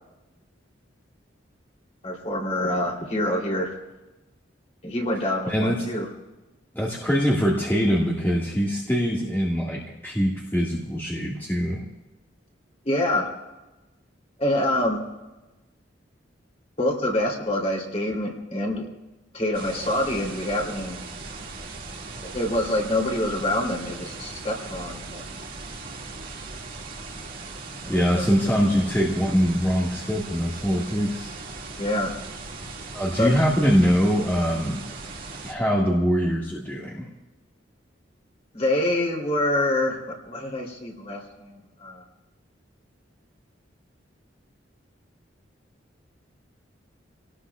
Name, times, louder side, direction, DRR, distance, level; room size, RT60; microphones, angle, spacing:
voice 1, 2.0-3.7 4.8-6.1 12.8-13.3 14.4-15.0 16.8-18.9 19.3-21.0 22.3-25.3 27.8-28.2 31.8-32.1 33.2-33.4 38.5-42.0, left 1 dB, 35° left, -1 dB, 3.3 m, -26 dB
voice 2, 5.5-5.9 6.7-11.8 27.9-31.3 32.9-34.8 35.4-37.1, equal, 10° left, -5 dB, 1.9 m, -23 dB
sound 1, 19.5-35.5, right 3 dB, 50° right, 2.2 m, -38 dB
27.5 x 18.5 x 2.4 m, 1.1 s
head